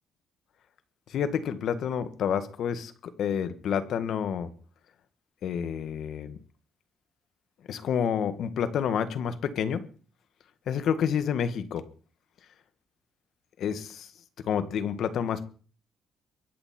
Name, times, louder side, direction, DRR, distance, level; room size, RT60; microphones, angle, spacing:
voice 1, 1.1-4.5 5.4-6.4 7.7-9.8 10.7-11.8 13.6-14.1 14.5-15.5, left 8 dB, 70° left, 1.6 m, -29 dB
23.0 x 9.3 x 4.4 m
cardioid pair, 110°, 0 cm